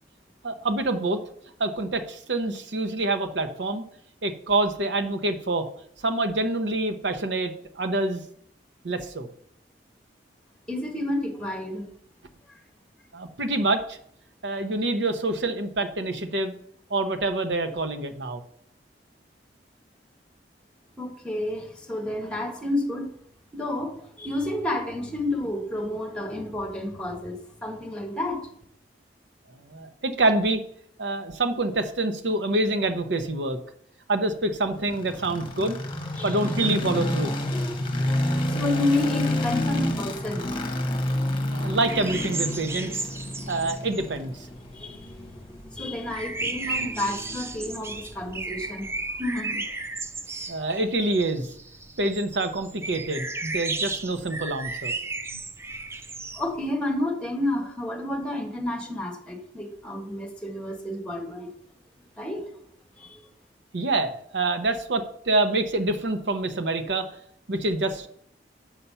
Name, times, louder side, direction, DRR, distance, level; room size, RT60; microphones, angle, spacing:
voice 1, 0.4-1.2 1.6-3.9 4.2-5.7 6.0-8.2 8.8-9.3 13.1-14.0 14.4-16.5 16.9-18.4 29.7-30.6 31.0-33.6 34.1-35.8 36.2-37.4 41.5-43.1 43.5-44.3 50.5-51.4 52.0-54.9 63.7-67.1 67.5-68.1, right 2 dB, 80° right, 8 dB, 0.8 m, -26 dB
voice 2, 10.7-11.8 21.0-23.1 23.5-28.4 36.2-36.7 38.5-40.5 44.7-45.2 45.7-48.9 49.2-49.6 56.3-61.5 62.2-62.4 63.0-63.2, left 1 dB, 5° left, 1 dB, 1.5 m, -30 dB
sound 1, 34.8-49.0, left 1 dB, 30° left, 1.1 m, -30 dB
sound 2, 41.9-45.1 45.4-56.6, right 3 dB, 15° right, 0.3 m, -34 dB
7.4 x 5.6 x 5.5 m, 0.66 s
head